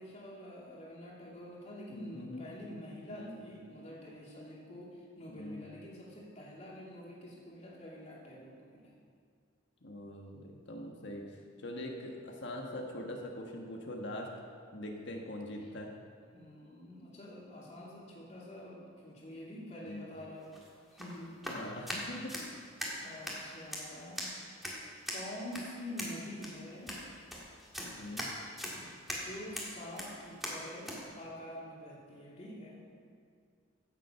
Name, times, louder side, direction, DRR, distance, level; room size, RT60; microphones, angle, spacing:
voice 1, 0.0-8.9 10.7-11.2 15.6-15.7 16.3-20.5 20.9-21.3 23.0-24.3 25.1-26.9 28.7-32.8, left 1 dB, 35° left, -5 dB, 2.8 m, -47 dB
voice 2, 1.9-2.4 3.1-3.3 5.3-5.6 9.8-11.3 11.6-14.3 14.7-15.9 19.8-20.1 21.4-22.5 27.9-28.3, left 1 dB, 60° left, 1 dB, 1.4 m, -42 dB
sound 1, 20.4-31.0, equal, ahead, 2.0 m, -42 dB
15.5 x 7.5 x 5.7 m, 2.2 s
head